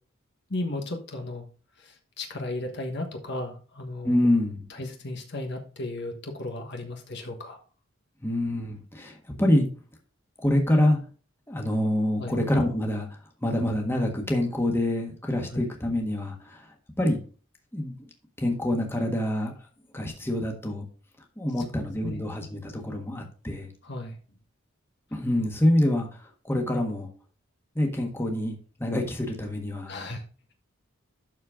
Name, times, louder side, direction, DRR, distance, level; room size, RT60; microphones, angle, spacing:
voice 1, 0.5-1.5 1.8-4.2 4.7-7.6 12.2-12.4 15.5-15.6 21.7-22.2 23.8-24.2 29.9-30.2, left 2 dB, 55° left, 3 dB, 1.4 m, -35 dB
voice 2, 4.0-4.6 8.2-9.7 10.4-11.0 11.5-13.1 13.4-16.7 17.0-17.2 17.7-18.1 18.4-19.5 19.9-20.8 21.4-23.7 25.1-26.1 26.4-27.1 27.7-29.9, left 1 dB, 10° left, 1 dB, 1.5 m, -26 dB
12.0 x 4.4 x 3.7 m, 0.38 s
head